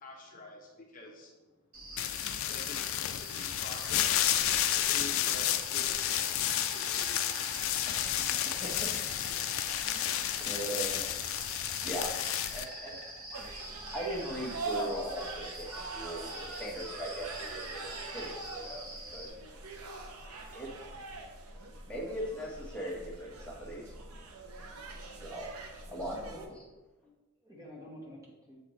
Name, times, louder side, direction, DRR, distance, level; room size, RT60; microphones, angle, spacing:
voice 1, 0.0-1.4 2.5-2.8 3.2-4.3 4.7-7.3 7.7-7.8, left 2 dB, 40° left, -1 dB, 0.7 m, -47 dB
Insect, 1.7-19.3, right 1 dB, 65° right, 1.5 m, -45 dB
sound 1, 2.0-12.6, left 12 dB, 65° left, 0.3 m, -31 dB
voice 2, 9.8-11.1 11.8-12.1 12.5-13.0 13.3-13.5 13.7-18.8 19.1-19.3 20.5-20.7 21.9-23.9 25.2-25.5 25.9-26.2, right 1 dB, 5° left, -5 dB, 1.2 m, -39 dB
sound 2, 13.3-26.5, right 2 dB, 85° right, 0.8 m, -43 dB
voice 3, 25.9-26.6 27.0-28.6, equal, 15° right, -3 dB, 1.2 m, -49 dB
7.4 x 4.2 x 3.1 m, 1.1 s
head